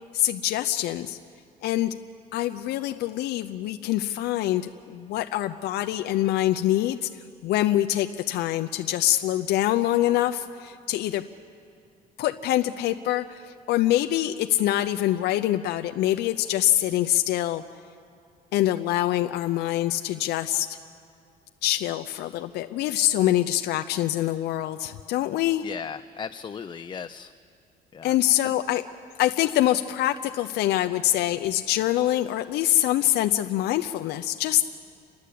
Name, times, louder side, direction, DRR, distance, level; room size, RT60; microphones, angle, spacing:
voice 1, 0.1-1.2 1.6-2.0 2.3-7.1 7.4-11.2 12.2-17.6 18.5-20.8 21.6-25.7 28.0-28.8 29.2-34.6, left 14 dB, 75° left, 8 dB, 0.6 m, -25 dB
voice 2, 25.6-27.3 27.9-28.1 28.4-28.5, left 6 dB, 25° left, 9 dB, 0.5 m, -36 dB
29.5 x 11.5 x 8.4 m, 2.4 s
cardioid pair, 110°, 17 cm